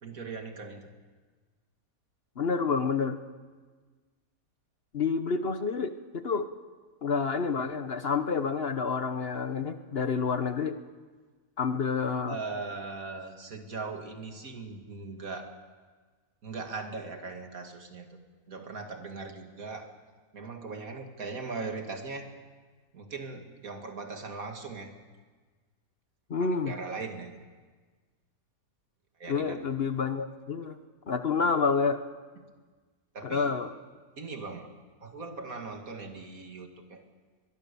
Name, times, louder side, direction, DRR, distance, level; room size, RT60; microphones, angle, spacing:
voice 1, 0.0-0.9 12.3-15.5 16.4-18.2 18.5-20.0 20.3-22.3 22.9-24.9 26.4-27.5 29.2-29.6 32.4-32.5 33.1-33.5 34.2-34.7 35.0-37.0, right 4 dB, 75° right, 4 dB, 2.6 m, -39 dB
voice 2, 2.4-3.2 4.9-6.5 7.0-10.8 11.6-12.4 26.3-26.7 29.3-30.8 31.1-32.0 33.2-33.7, left 5 dB, 50° left, 10 dB, 1.1 m, -29 dB
22.5 x 22.0 x 6.9 m, 1.4 s
omnidirectional pair, 1.5 m